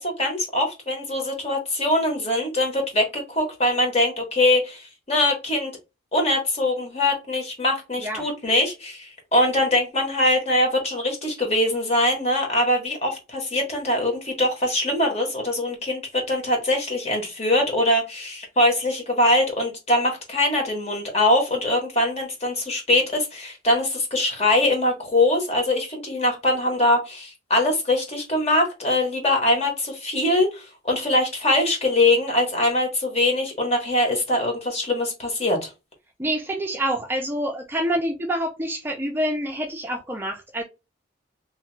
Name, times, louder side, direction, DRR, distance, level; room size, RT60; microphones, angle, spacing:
voice 1, 0.0-5.7 6.1-35.7, left 1 dB, 35° left, 1.0 m, -22 dB
voice 2, 36.2-40.6, right 1 dB, 10° right, 0.4 m, -27 dB
2.8 x 2.2 x 3.1 m
head